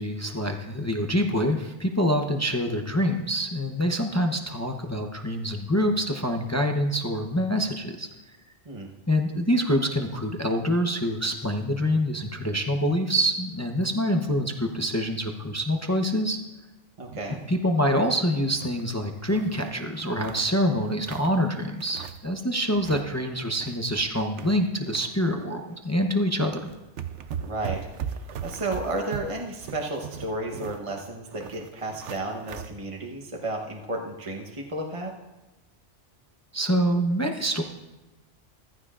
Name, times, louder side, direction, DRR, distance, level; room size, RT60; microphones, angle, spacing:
voice 1, 0.0-8.1 9.1-16.4 17.5-26.5 36.5-37.6, equal, 15° left, 3 dB, 0.6 m, -26 dB
voice 2, 17.0-17.4 27.4-27.9 28.4-35.1, right 2 dB, 30° right, 1 dB, 1.0 m, -32 dB
sound 1, 17.0-17.5 17.9-18.0 18.3-19.6 20.0-21.4 21.8-22.4 22.6-23.1 23.4-25.0 25.4-25.6 26.3-26.4 26.6-32.7, right 8 dB, 85° right, 1.0 m, -39 dB
15.0 x 14.0 x 2.5 m, 1.1 s
omnidirectional pair, 1.2 m